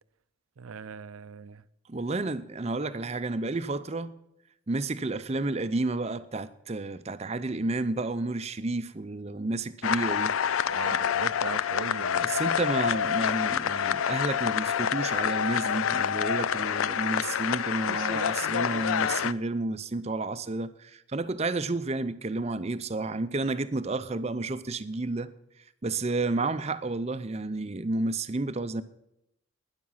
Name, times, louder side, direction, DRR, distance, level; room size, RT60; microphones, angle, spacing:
voice 1, 0.6-1.6 10.7-12.3, right 5 dB, 85° right, 0.6 m, -39 dB
voice 2, 1.9-4.1 4.7-10.3 12.2-25.3 25.8-28.8, right 2 dB, 30° right, 0.6 m, -31 dB
sound 1, 9.8-19.3, left 8 dB, 75° left, 0.4 m, -27 dB
12.5 x 10.5 x 5.7 m
head